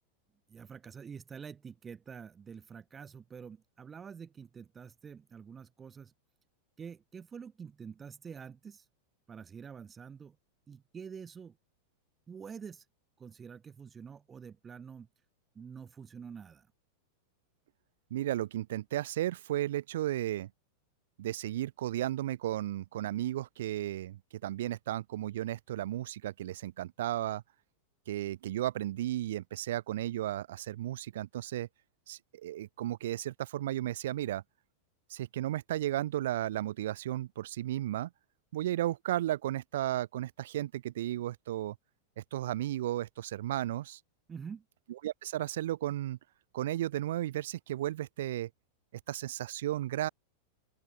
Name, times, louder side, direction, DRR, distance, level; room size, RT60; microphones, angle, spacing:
voice 1, 0.5-6.1 6.8-8.9 9.3-10.4 10.7-11.6 12.3-12.9 13.2-15.1 15.5-16.7 44.3-44.6, right 6 dB, 20° right, 7.4 m, -47 dB
voice 2, 18.1-20.5 21.2-27.4 28.1-31.7 32.1-34.4 35.1-38.1 38.5-41.7 42.2-44.0 44.9-46.2 46.5-48.5 49.1-50.1, right 13 dB, 55° right, 2.7 m, -34 dB
open air
figure-of-eight pair, 90°, 0 cm